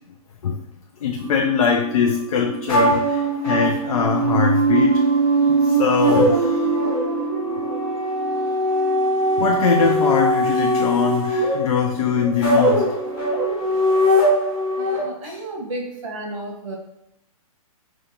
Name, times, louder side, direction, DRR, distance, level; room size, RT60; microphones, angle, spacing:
voice 1, 1.0-5.0 5.5-6.8 9.4-12.9 15.2-15.4, left 6 dB, 75° left, 2 dB, 0.5 m, -22 dB
sound 1, 1.2-13.4, right 7 dB, 25° right, 0.4 m, -31 dB
sound 2, 2.7-15.0, right 1 dB, 15° left, 1.3 m, -21 dB
voice 2, 14.7-16.8, right 1 dB, 55° right, -1 dB, 1.3 m, -32 dB
5.0 x 2.4 x 2.9 m, 0.82 s
hypercardioid pair, 165°, 19 cm